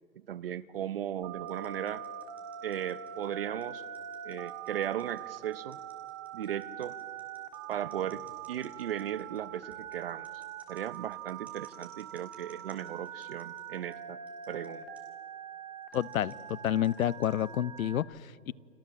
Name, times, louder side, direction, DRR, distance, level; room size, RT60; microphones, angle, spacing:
voice 1, 0.3-2.0 2.6-3.8 4.2-5.8 6.3-7.0 7.7-10.3 10.7-14.2 14.5-14.9, right 10 dB, 40° right, 16 dB, 0.7 m, -36 dB
Telephone, 1.2-18.0, right 9 dB, 25° right, 1.9 m, -43 dB
sound 1, 1.5-13.9 14.3-14.7 14.9-15.0 15.8-17.6, right 3 dB, 5° right, 3.8 m, -61 dB
sound 2, 7.9-10.1, left 4 dB, 35° left, 7.6 m, -66 dB
voice 2, 15.9-18.5, left 11 dB, 70° left, 20 dB, 0.8 m, -30 dB
30.0 x 25.0 x 7.5 m, 2.1 s
hypercardioid pair, 170°, 44 cm